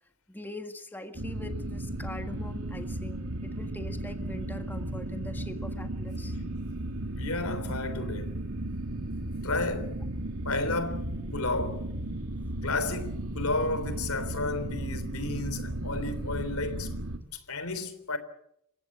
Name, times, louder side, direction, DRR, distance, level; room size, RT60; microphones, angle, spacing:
voice 1, 0.3-6.4, left 1 dB, 10° left, 1.7 m, -42 dB
sound 1, 1.1-17.2, right 1 dB, 75° right, 2.5 m, -35 dB
voice 2, 7.1-8.3 9.4-10.0 10.4-11.9 12.6-16.9 17.3-18.2, left 2 dB, 85° left, 3.4 m, -32 dB
28.5 x 15.5 x 8.5 m
head